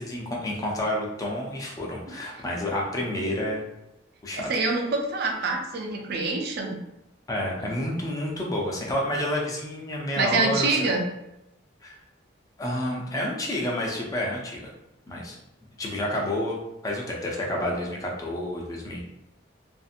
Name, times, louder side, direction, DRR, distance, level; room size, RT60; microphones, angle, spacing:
voice 1, 0.0-3.6 4.2-4.5 7.3-10.9 11.8-12.0 12.6-14.7 15.1-15.4 15.8-16.6 16.8-19.0, left 1 dB, 20° left, -2 dB, 0.5 m, -29 dB
voice 2, 4.3-6.8 10.2-11.1, right 3 dB, 55° right, 1 dB, 0.5 m, -26 dB
2.6 x 2.5 x 2.5 m, 0.92 s
head